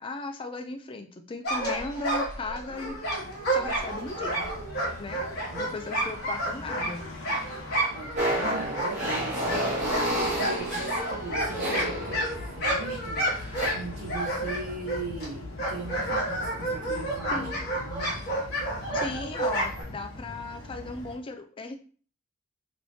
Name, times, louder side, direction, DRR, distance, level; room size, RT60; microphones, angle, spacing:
voice 1, 0.0-3.0 3.5-4.5 5.0-7.1 17.3-17.5 18.9-21.8, left 3 dB, 25° left, 6 dB, 0.3 m, -36 dB
sound 1, 1.4-8.2 8.4-15.3 15.6-19.8, right 1 dB, 50° left, 1.2 m, -30 dB
sound 2, 3.0-21.2, left 2 dB, 70° left, 0.9 m, -42 dB
voice 2, 7.9-17.5 17.8-18.2 18.9-19.2, right 2 dB, 90° right, -6 dB, 0.9 m, -39 dB
sound 3, 8.2-12.6 13.3-13.7, right 1 dB, 35° right, 1.3 m, -30 dB
3.2 x 3.1 x 2.7 m, 0.42 s
head